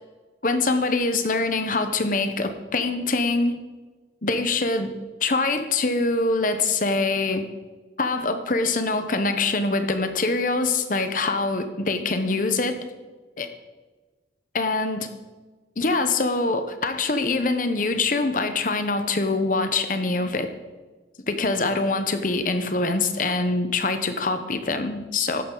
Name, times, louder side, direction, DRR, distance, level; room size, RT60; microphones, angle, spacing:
voice 1, 0.4-3.6 4.2-4.9 5.2-7.4 8.0-12.8 13.4-13.5 14.5-15.1 15.8-20.5 21.3-25.4, left 3 dB, 45° left, 9 dB, 0.9 m, -24 dB
13.0 x 9.9 x 3.9 m, 1.3 s
head